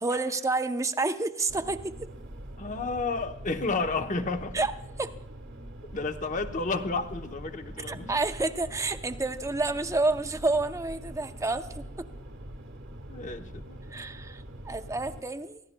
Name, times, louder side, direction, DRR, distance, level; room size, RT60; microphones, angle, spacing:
voice 1, 0.0-2.1 4.5-4.7 5.0-5.1 7.9-11.8 13.9-15.6, right 3 dB, 15° right, 9 dB, 0.6 m, -29 dB
sound 1, 1.5-15.2, right 1 dB, 65° right, 1.2 m, -43 dB
voice 2, 2.6-4.6 5.9-8.1 13.1-13.8, left 3 dB, 40° left, 7 dB, 0.8 m, -31 dB
24.0 x 15.5 x 2.2 m, 0.85 s
head